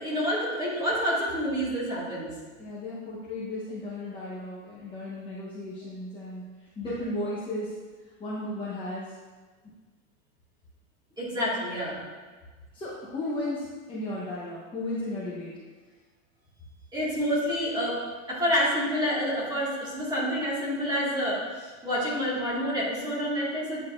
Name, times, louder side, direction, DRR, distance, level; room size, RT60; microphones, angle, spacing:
voice 1, 0.0-2.3 11.2-12.0 16.9-18.0 18.3-23.8, equal, 10° right, -7 dB, 1.9 m, -28 dB
voice 2, 2.6-6.4 6.8-7.7 8.2-9.1 12.7-15.5, left 1 dB, 15° left, -9 dB, 1.0 m, -34 dB
9.7 x 4.1 x 2.6 m, 1.4 s
supercardioid pair, 140°, 40 cm